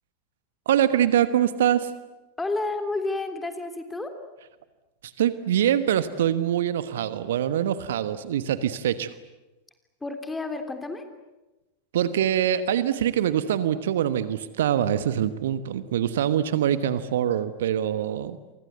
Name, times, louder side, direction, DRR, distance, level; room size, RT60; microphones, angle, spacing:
voice 1, 0.7-1.9 5.0-9.1 11.9-18.4, right 10 dB, 60° right, 13 dB, 1.2 m, -24 dB
voice 2, 2.4-4.1 10.0-11.0, left 2 dB, 10° left, 7 dB, 3.3 m, -30 dB
29.5 x 24.0 x 8.2 m, 1.0 s
figure-of-eight pair, 90°, 0 cm